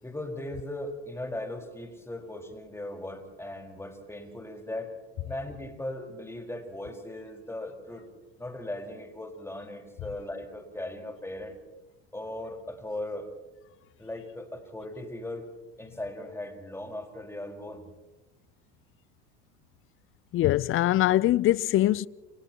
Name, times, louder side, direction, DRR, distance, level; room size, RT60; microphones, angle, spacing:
voice 1, 0.0-4.9 5.2-8.1 8.4-11.6 12.1-13.3 14.0-15.5 15.8-17.8, left 1 dB, 10° left, 4.7 m, -38 dB
voice 2, 20.3-22.1, left 15 dB, 40° left, 0.6 m, -23 dB
30.0 x 29.5 x 3.0 m
hypercardioid pair, 85°, 32 cm